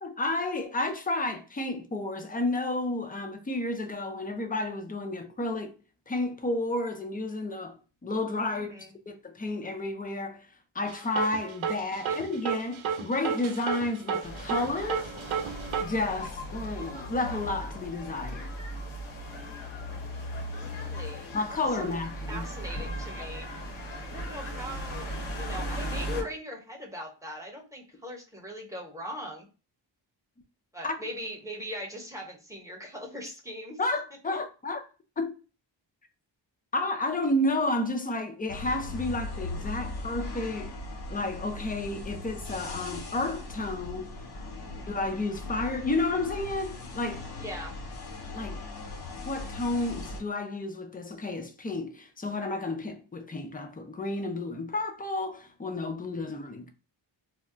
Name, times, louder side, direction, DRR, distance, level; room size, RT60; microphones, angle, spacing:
voice 1, 0.0-5.7 6.1-8.7 9.1-10.5 10.7-15.0 15.8-18.5 21.3-22.4 30.8-30.9 33.8-34.8 35.2-35.3 36.7-40.7 41.1-44.1 44.9-47.3 48.3-48.6 49.2-56.7, left 2 dB, 20° left, 0.5 m, -31 dB
voice 2, 8.5-8.9 12.0-12.2 20.6-21.3 21.8-21.9 22.3-23.5 24.0-29.5 30.7-33.8 34.3-34.4 44.6-44.9 47.4-47.8, equal, 5° right, 0.9 m, -40 dB
sound 1, 10.9-15.8, right 7 dB, 80° right, 0.5 m, -31 dB
sound 2, 14.2-26.2, equal, 85° left, 1.0 m, -37 dB
sound 3, 38.5-50.2, left 2 dB, 55° left, 0.7 m, -39 dB
2.3 x 2.1 x 3.7 m
cardioid pair, 65°, 47 cm